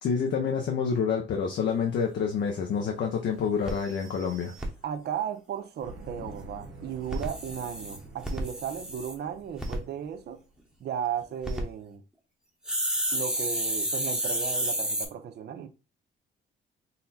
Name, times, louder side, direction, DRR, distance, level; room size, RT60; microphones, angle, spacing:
voice 1, 0.0-4.6, left 6 dB, 65° left, 0.7 m, -28 dB
sound 1, 2.5-2.6 3.0-3.1 3.3-3.4 3.6-4.7 7.0-9.1 9.6-9.8 11.2-11.6 12.7-15.1, right 1 dB, 5° right, 1.0 m, -31 dB
voice 2, 4.8-10.4 10.8-12.0 13.1-15.7, right 8 dB, 55° right, 0.6 m, -35 dB
sound 2, 5.8-10.6, right 2 dB, 80° right, 1.1 m, -48 dB
4.0 x 2.1 x 4.1 m
cardioid pair, 90°, 20 cm